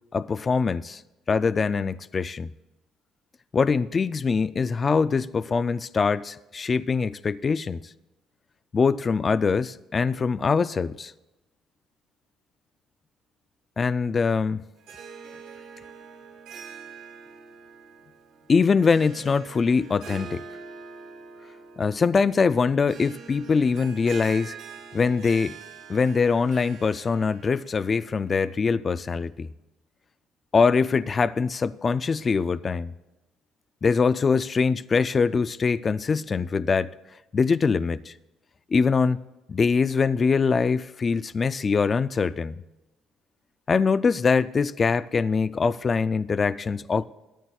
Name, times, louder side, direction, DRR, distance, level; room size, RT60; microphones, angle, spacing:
voice 1, 0.1-1.0 1.3-2.5 3.5-7.8 8.7-11.1 13.8-14.6 18.5-20.4 21.8-24.6 24.9-25.6 25.9-29.5 30.5-32.9 33.8-36.9 37.3-38.1 38.7-39.2 39.5-42.6 43.7-47.0, left 5 dB, 30° left, 0.3 m, -23 dB
Harp, 14.8-28.5, right 6 dB, 80° right, 2.6 m, -44 dB
18.5 x 13.5 x 2.4 m
cardioid pair, 125°, 0 cm